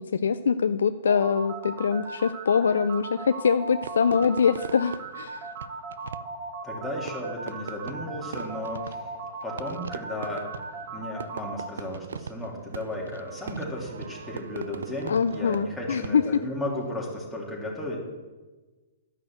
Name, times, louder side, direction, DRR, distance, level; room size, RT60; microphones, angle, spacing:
voice 1, 0.0-5.4 15.1-16.4, left 6 dB, 80° left, 10 dB, 0.4 m, -24 dB
sound 1, 1.1-11.7, right 4 dB, 45° right, 2.1 m, -38 dB
Fireworks, 3.8-16.5, right 6 dB, 80° right, 0.4 m, -41 dB
voice 2, 6.6-9.1 9.4-10.5 10.9-18.0, left 1 dB, ahead, -5 dB, 3.2 m, -34 dB
11.5 x 6.0 x 7.8 m, 1.3 s
hypercardioid pair, 130°, 0 cm